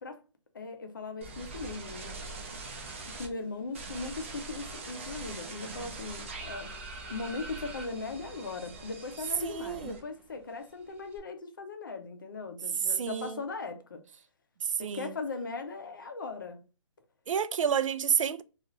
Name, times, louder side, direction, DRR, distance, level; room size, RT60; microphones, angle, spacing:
voice 1, 0.5-2.2 3.1-6.7 7.1-14.0 14.8-16.6, left 3 dB, 40° left, 0.5 m, -39 dB
sound 1, 1.2-3.3 3.7-10.3 10.6-11.2, right 3 dB, 25° right, 0.5 m, -43 dB
voice 2, 9.4-10.0 12.9-13.4 14.6-15.1 17.3-18.4, right 7 dB, 90° right, 0.4 m, -29 dB
2.5 x 2.4 x 3.0 m
hypercardioid pair, 180°, 16 cm